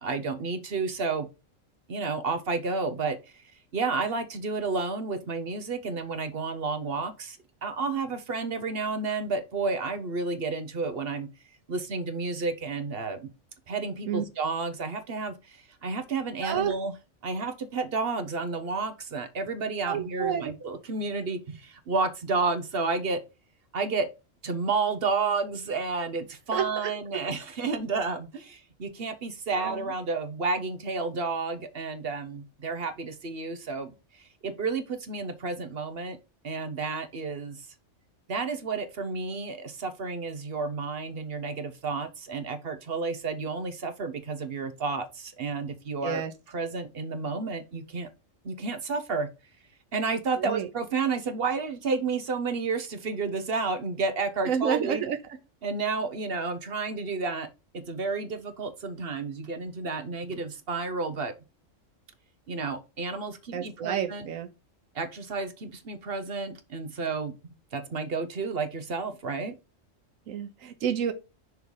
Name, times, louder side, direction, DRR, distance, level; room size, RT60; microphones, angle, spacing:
voice 1, 0.0-1.3 1.9-3.4 3.7-11.3 11.7-13.3 13.7-16.9 17.2-23.2 23.7-24.1 24.4-33.9 34.2-36.2 36.4-37.6 38.3-46.2 46.5-48.1 48.4-49.3 49.9-55.0 55.6-57.5 57.7-61.3 62.5-64.3 64.9-69.5, right 4 dB, 50° right, 1.1 m, -31 dB
voice 2, 16.4-16.8 19.8-20.5 26.5-26.9 29.6-29.9 46.0-46.3 50.4-50.7 54.4-55.2 63.5-64.5 70.3-71.1, right 8 dB, 85° right, 1.2 m, -30 dB
6.4 x 3.2 x 5.3 m
omnidirectional pair, 1.3 m